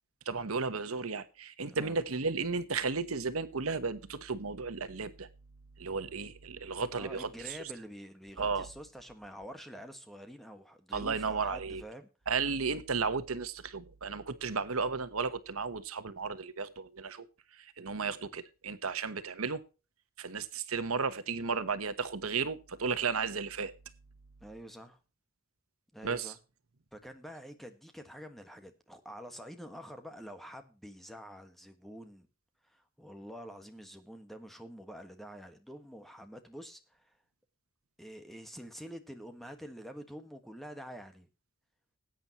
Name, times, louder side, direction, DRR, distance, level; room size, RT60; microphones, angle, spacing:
voice 1, 0.2-5.3 5.8-7.6 8.4-8.7 10.9-11.8 12.3-17.3 17.5-19.6 20.2-23.7 26.0-26.3, right 5 dB, 85° right, 1.1 m, -34 dB
voice 2, 6.9-12.1 21.3-21.6 24.4-25.0 25.9-26.4 26.9-32.3 32.6-37.2 38.0-41.3, equal, ahead, 1.5 m, -47 dB
19.5 x 8.9 x 3.0 m
head